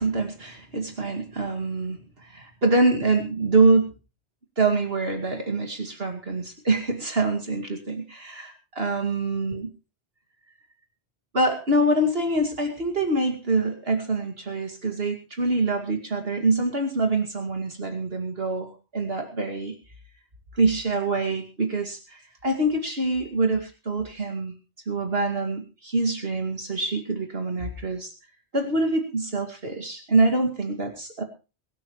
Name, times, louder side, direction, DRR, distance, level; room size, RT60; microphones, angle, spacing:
voice 1, 0.0-3.9 4.6-9.7 11.3-19.8 20.5-24.5 24.9-28.1 28.5-31.2, right 2 dB, 60° right, 5 dB, 2.6 m, -25 dB
23.0 x 12.0 x 3.1 m, 0.31 s
omnidirectional pair, 1.1 m